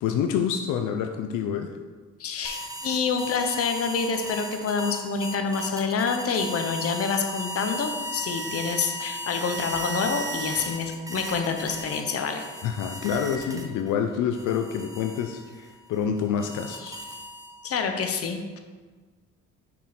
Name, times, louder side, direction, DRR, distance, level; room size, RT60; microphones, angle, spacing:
voice 1, 0.0-1.8 12.6-17.0, left 7 dB, 80° left, 5 dB, 0.5 m, -27 dB
voice 2, 2.2-12.5 17.6-18.6, left 5 dB, 50° left, 6 dB, 0.7 m, -27 dB
sound 1, 2.4-13.9 14.3-17.7, equal, 10° right, 0.8 m, -36 dB
6.2 x 3.8 x 4.2 m, 1.4 s
cardioid pair, 90°, 30 cm